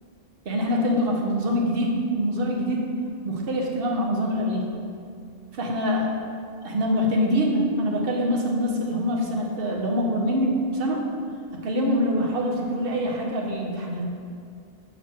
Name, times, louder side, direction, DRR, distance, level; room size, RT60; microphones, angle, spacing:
voice 1, 0.4-2.9 3.2-4.7 5.6-6.1 6.6-11.1 11.6-14.1, equal, 55° right, -1 dB, 0.9 m, -24 dB
6.0 x 3.0 x 5.7 m, 2.4 s
omnidirectional pair, 1.2 m